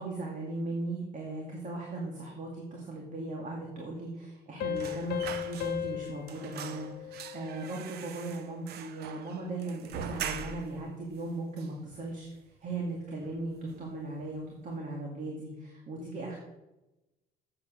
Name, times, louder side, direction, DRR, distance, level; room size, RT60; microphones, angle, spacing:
voice 1, 0.0-12.3 12.6-16.4, right 2 dB, 50° right, -1 dB, 2.3 m, -38 dB
Piano, 4.6-7.9, left 11 dB, 75° left, 1.2 m, -37 dB
sound 1, 4.8-6.0 6.3-10.8 11.2-11.3 11.6-12.4 12.7-12.9 13.2-13.9 14.2-14.4, right 7 dB, 70° right, 0.9 m, -42 dB
8.2 x 7.9 x 6.3 m, 1.0 s
cardioid pair, 110°, 17 cm